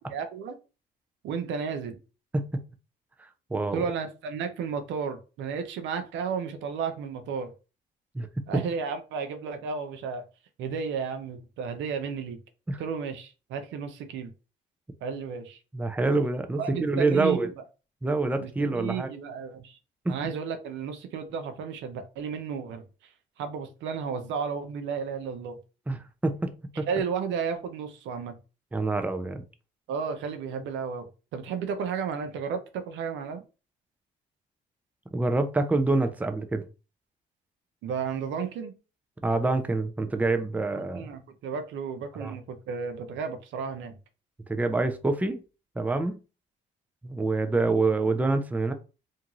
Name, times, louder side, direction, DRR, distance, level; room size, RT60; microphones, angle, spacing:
voice 1, 0.1-0.6 1.2-2.0 3.7-7.5 8.5-10.2 10.6-12.4 12.8-14.3 15.0-15.6 16.6-17.6 18.4-19.8 20.1-22.8 23.4-25.6 26.9-28.4 29.9-33.4 37.8-38.7 40.7-43.9, right 6 dB, 75° right, 0.5 m, -33 dB
voice 2, 3.5-3.8 8.1-8.3 12.7-12.8 15.7-17.5 18.0-19.1 20.1-20.3 25.9-26.5 26.8-26.9 28.7-29.4 35.1-36.7 39.2-41.1 42.2-42.3 44.5-45.4 45.8-46.2 47.0-48.7, right 3 dB, 10° right, 0.5 m, -26 dB
2.6 x 2.3 x 2.9 m
supercardioid pair, 60°, 20 cm